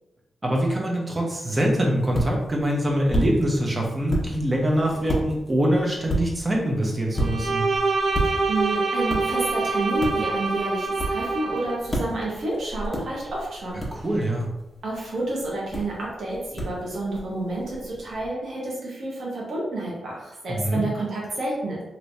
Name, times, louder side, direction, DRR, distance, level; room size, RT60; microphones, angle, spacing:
voice 1, 0.4-7.6 13.9-14.5 20.5-20.8, right 1 dB, 30° right, -1 dB, 0.9 m, -24 dB
sound 1, 1.5-18.3, right 1 dB, 25° left, 0.9 m, -33 dB
Bowed string instrument, 7.2-11.8, right 3 dB, 50° right, 0.5 m, -25 dB
voice 2, 8.2-13.8 14.8-15.9 16.2-21.8, right 2 dB, 75° right, -4 dB, 1.2 m, -29 dB
3.1 x 3.0 x 2.7 m, 0.92 s
cardioid pair, 75°, 0 cm